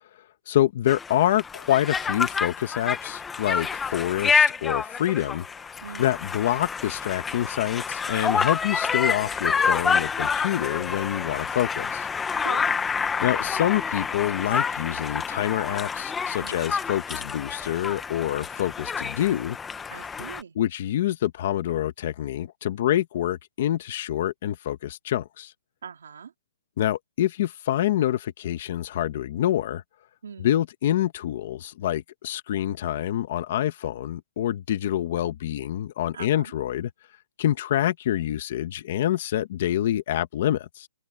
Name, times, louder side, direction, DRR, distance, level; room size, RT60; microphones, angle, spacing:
voice 1, 0.5-5.4 6.0-12.1 13.2-19.6 20.6-25.5 26.8-29.8 30.4-36.9 37.4-40.9, left 12 dB, 35° left, 1.0 m, -26 dB
Conversation, 0.9-20.4, left 6 dB, 5° left, 0.8 m, -28 dB
voice 2, 5.8-6.2 12.4-12.7 16.4-16.7 19.9-20.6 25.8-26.3 30.2-30.6 36.1-36.5, right 7 dB, 65° right, 3.3 m, -42 dB
hypercardioid pair, 175°, 0 cm